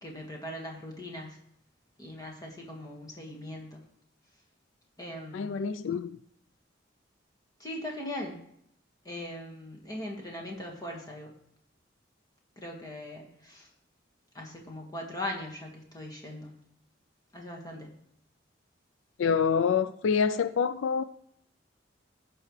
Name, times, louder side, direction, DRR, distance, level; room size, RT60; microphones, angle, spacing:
voice 1, 0.0-1.4 2.0-3.8 5.0-5.6 7.6-8.4 9.1-11.3 12.6-13.7 14.3-16.6 17.3-18.0, left 1 dB, 20° left, 0 dB, 1.8 m, -40 dB
voice 2, 5.3-6.2 19.2-21.0, left 6 dB, 85° left, 13 dB, 0.4 m, -26 dB
16.0 x 5.5 x 3.2 m, 0.71 s
head